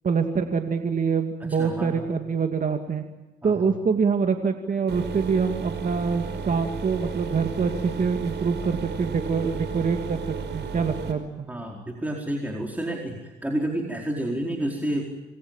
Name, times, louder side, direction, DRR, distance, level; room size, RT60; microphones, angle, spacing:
voice 1, 0.0-3.0 3.4-11.5, right 5 dB, 40° right, 5 dB, 2.5 m, -25 dB
voice 2, 1.5-2.1 3.4-3.7 11.5-15.1, right 1 dB, 10° right, 0 dB, 4.6 m, -30 dB
sound 1, 4.9-11.1, right 5 dB, 60° right, 5.2 m, -33 dB
27.0 x 22.0 x 9.1 m, 1.1 s
cardioid pair, 90°, 20 cm